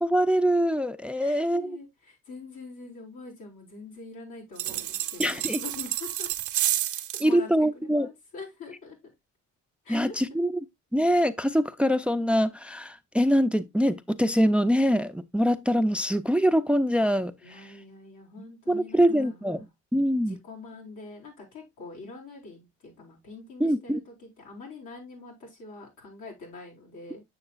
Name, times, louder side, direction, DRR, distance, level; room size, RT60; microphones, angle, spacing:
voice 1, 0.0-1.8 5.2-5.6 7.2-8.1 9.9-10.6 10.9-17.3 18.7-19.7 19.9-20.4 23.6-24.0, equal, 5° right, 0.4 m, -24 dB
voice 2, 1.1-6.3 6.9-9.0 9.8-10.1 17.4-19.7 20.2-27.2, left 3 dB, 90° left, 4.2 m, -45 dB
sound 1, 4.6-7.3, right 13 dB, 85° right, 0.8 m, -30 dB
7.9 x 6.4 x 2.4 m
cardioid pair, 90°, 30 cm